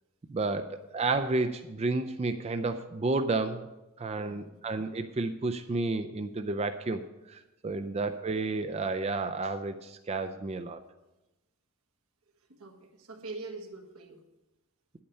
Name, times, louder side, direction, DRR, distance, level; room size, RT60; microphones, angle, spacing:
voice 1, 0.3-3.7 4.0-7.0 7.3-10.8, right 3 dB, 30° right, 8 dB, 0.4 m, -31 dB
voice 2, 4.2-4.6 7.8-7.9 12.4-14.2, right 3 dB, 90° right, 3 dB, 1.5 m, -44 dB
9.9 x 8.6 x 5.5 m, 1.0 s
head